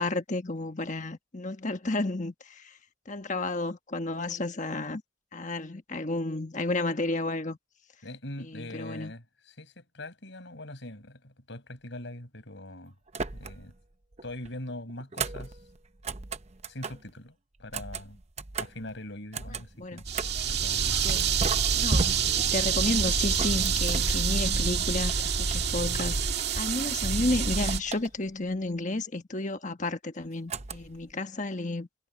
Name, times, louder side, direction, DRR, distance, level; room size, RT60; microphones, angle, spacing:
voice 1, 0.0-2.8 3.1-5.0 5.3-7.6 8.4-9.1 19.8-20.0 21.0-21.4 21.7-26.1 26.6-31.9, left 2 dB, 40° left, 1.4 m, -32 dB
voice 2, 8.0-12.9 13.3-13.7 14.2-15.6 16.7-18.2 18.6-20.0 20.5-21.0, left 1 dB, 60° left, 5.3 m, -42 dB
sound 1, 13.1-13.8 14.1-17.1 17.6-20.5 21.1-24.6 25.0-26.8 27.1-28.5 30.5-31.1, right 3 dB, 35° right, 0.8 m, -36 dB
sound 2, 20.1-27.8, right 6 dB, 55° right, 2.1 m, -27 dB
head